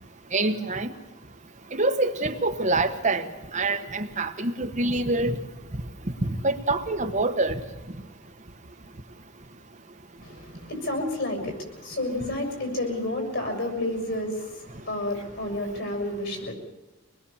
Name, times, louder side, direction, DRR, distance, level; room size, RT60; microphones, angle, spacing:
voice 1, 0.3-0.9 1.7-3.3 3.5-5.4 6.4-7.6, right 2 dB, 35° right, 7 dB, 1.2 m, -25 dB
voice 2, 10.2-16.5, left 1 dB, 60° left, 4 dB, 7.0 m, -30 dB
25.5 x 20.0 x 7.2 m, 1.1 s
head